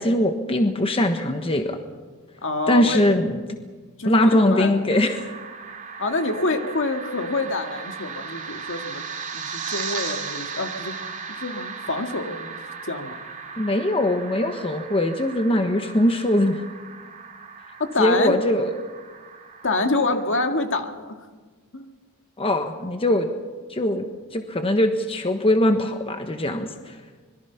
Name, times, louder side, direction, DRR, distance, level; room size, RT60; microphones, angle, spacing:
voice 1, 0.0-1.8 2.7-3.4 4.0-5.2 13.6-16.6 18.0-18.7 22.4-23.3 23.7-24.0 24.3-26.9, left 1 dB, 25° left, 6 dB, 1.2 m, -21 dB
voice 2, 2.4-3.0 4.0-4.8 6.0-9.0 9.3-10.9 11.4-12.5 12.9-13.2 17.8-18.4 19.6-21.2 21.7-21.9, left 2 dB, 60° left, 6 dB, 1.9 m, -26 dB
sound 1, 4.9-20.2, right 5 dB, 35° right, 2.7 m, -36 dB
25.5 x 22.0 x 5.8 m, 1.4 s
head